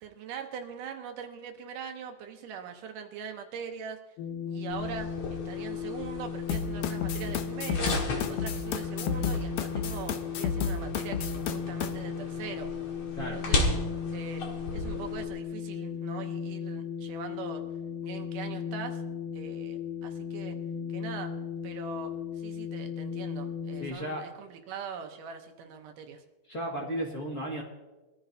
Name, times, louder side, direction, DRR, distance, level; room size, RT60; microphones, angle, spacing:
voice 1, 0.0-4.0 4.5-12.7 13.2-13.6 14.1-14.4 14.7-17.6 18.0-19.0 19.3-20.6 20.9-21.3 21.6-26.2, right 7 dB, 75° right, 5 dB, 2.5 m, -42 dB
sound 1, 4.2-23.9, left 7 dB, 90° left, 2.6 m, -36 dB
sound 2, 4.7-15.3, left 2 dB, 50° left, 2.7 m, -36 dB
sound 3, 6.5-11.9, left 6 dB, 70° left, 1.8 m, -31 dB
voice 2, 23.8-24.2 26.5-27.6, equal, 30° left, -3 dB, 2.1 m, -34 dB
23.5 x 14.0 x 2.7 m, 1.1 s
omnidirectional pair, 3.9 m